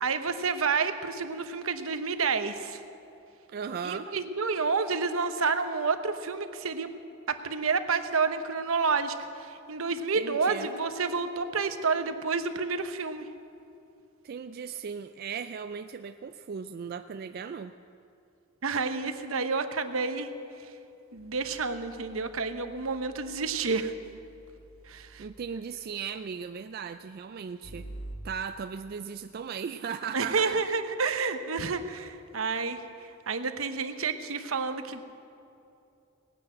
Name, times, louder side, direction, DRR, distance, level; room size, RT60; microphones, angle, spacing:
voice 1, 0.0-2.8 3.8-6.9 7.3-13.3 18.6-20.3 21.1-23.9 24.9-25.2 30.1-35.0, right 4 dB, 75° right, 9 dB, 0.9 m, -29 dB
voice 2, 3.5-4.1 10.2-10.7 14.2-17.7 25.2-27.9 28.2-30.6, right 6 dB, 45° right, 9 dB, 0.3 m, -37 dB
sound 1, 21.2-25.5 27.6-28.2, right 1 dB, 45° left, 1.5 m, -48 dB
18.5 x 9.9 x 7.6 m, 2.8 s
head